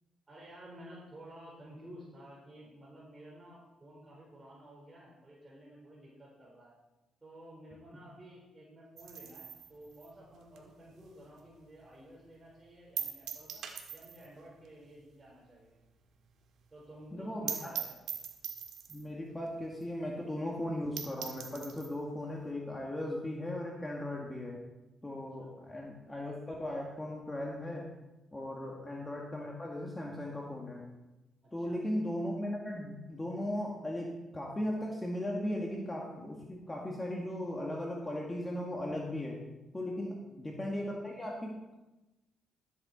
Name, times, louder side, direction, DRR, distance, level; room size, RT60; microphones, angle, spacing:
voice 1, 0.3-6.7 7.2-13.6 13.9-15.8 16.7-18.0 25.4-25.5 31.4-31.8 40.2-40.4, right 1 dB, 20° right, -6 dB, 4.5 m, -53 dB
sound 1, 9.0-11.6 11.9-12.0 12.4-12.5 13.0-14.4 14.6-14.7 15.0-15.1 15.5-15.6 15.9-16.0 16.2-16.3 16.7-16.8 17.1-17.2 17.5-19.1 19.8-19.9 20.2-20.3 20.7-20.8 21.0-21.9, right 8 dB, 75° right, 1.7 m, -41 dB
voice 2, 17.1-17.7 18.9-24.6 25.0-27.9 28.3-30.8 31.5-39.4 39.7-41.7, left 1 dB, 15° left, -1 dB, 1.9 m, -37 dB
13.5 x 9.0 x 4.3 m, 1.0 s
cardioid pair, 90°, 0 cm